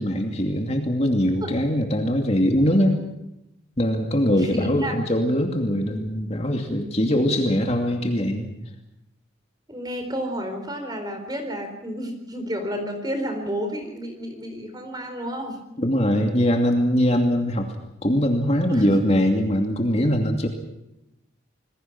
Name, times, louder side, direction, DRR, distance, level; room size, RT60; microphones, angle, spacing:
voice 1, 0.0-3.0 3.8-8.5 15.8-17.7 18.0-20.5, equal, 30° left, 3 dB, 2.6 m, -22 dB
voice 2, 4.3-4.9 9.7-15.6 18.7-18.9, equal, 20° right, 6 dB, 4.3 m, -31 dB
27.5 x 21.0 x 6.1 m, 0.89 s
head